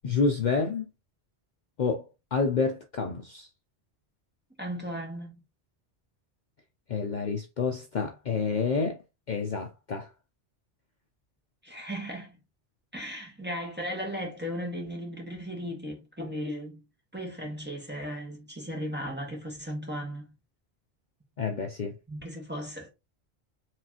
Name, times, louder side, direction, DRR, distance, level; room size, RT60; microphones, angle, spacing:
voice 1, 0.0-0.9 1.8-3.5 6.9-9.0 9.3-10.1 21.4-22.0, left 4 dB, 50° left, 0.7 m, -29 dB
voice 2, 4.6-5.4 11.6-12.4 12.9-16.8 17.1-20.3 22.1-22.9, equal, 10° right, 1.5 m, -36 dB
4.8 x 3.3 x 2.8 m
omnidirectional pair, 1.1 m